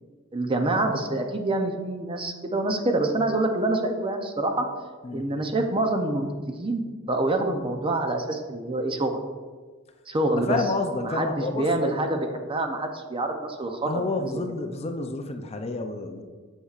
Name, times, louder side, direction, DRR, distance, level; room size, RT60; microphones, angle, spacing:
voice 1, 0.3-4.7 5.1-9.2 10.1-10.6 11.0-13.9 14.2-14.4, right 2 dB, 25° right, 4 dB, 0.6 m, -26 dB
voice 2, 10.3-11.9 13.9-16.2, left 3 dB, 30° left, 6 dB, 0.5 m, -30 dB
8.2 x 6.5 x 2.4 m, 1.4 s
head